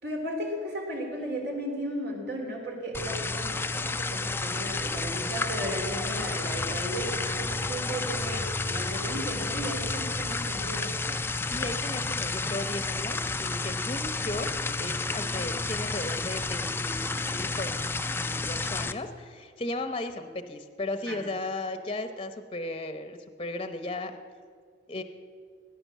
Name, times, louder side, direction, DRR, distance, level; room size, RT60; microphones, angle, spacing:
voice 1, 0.0-10.9 21.1-21.2, right 1 dB, 65° right, 1 dB, 3.5 m, -35 dB
sound 1, 2.9-18.9, left 3 dB, 15° left, 0.4 m, -31 dB
voice 2, 11.4-14.5 14.8-17.8 18.1-24.2 24.9-25.0, left 2 dB, 30° left, 8 dB, 0.8 m, -36 dB
18.0 x 10.5 x 7.3 m, 2.1 s
head